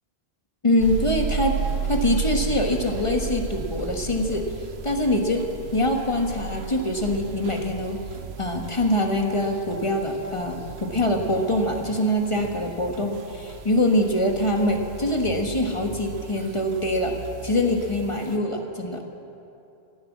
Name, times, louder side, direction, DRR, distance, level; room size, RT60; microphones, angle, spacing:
voice 1, 0.6-1.6 1.9-4.5 4.8-5.4 5.7-8.0 8.4-17.1 17.4-19.0, left 1 dB, 30° left, 2 dB, 1.4 m, -24 dB
sound 1, 0.8-18.4, right 5 dB, 85° right, 1.1 m, -34 dB
17.5 x 11.5 x 7.4 m, 2.7 s
omnidirectional pair, 1.1 m